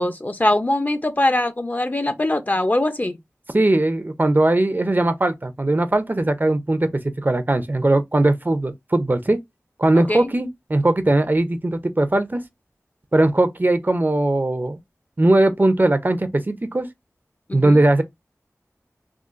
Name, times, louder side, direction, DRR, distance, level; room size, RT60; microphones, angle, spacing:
voice 1, 0.0-3.2 10.1-10.3 17.5-17.8, left 1 dB, 30° left, 0.6 m, -22 dB
voice 2, 3.5-9.4 9.8-12.4 13.1-14.8 15.2-16.9 17.5-18.0, right 2 dB, 35° right, 0.6 m, -19 dB
3.7 x 2.4 x 2.5 m
wide cardioid pair, 60°, 6 cm